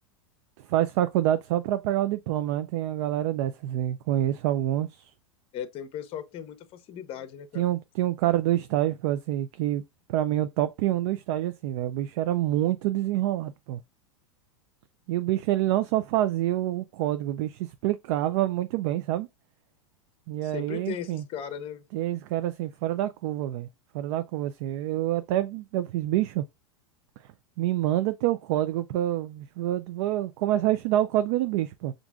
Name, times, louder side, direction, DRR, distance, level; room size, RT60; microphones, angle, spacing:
voice 1, 0.7-5.1 7.6-9.8 10.1-13.8 15.1-19.3 20.3-21.2 21.9-23.7 23.9-26.4 27.6-31.9, right 13 dB, 60° right, 0.4 m, -27 dB
voice 2, 5.5-7.6 20.4-21.8, left 9 dB, 35° left, 0.7 m, -37 dB
5.9 x 2.5 x 2.3 m
hypercardioid pair, 115°, 17 cm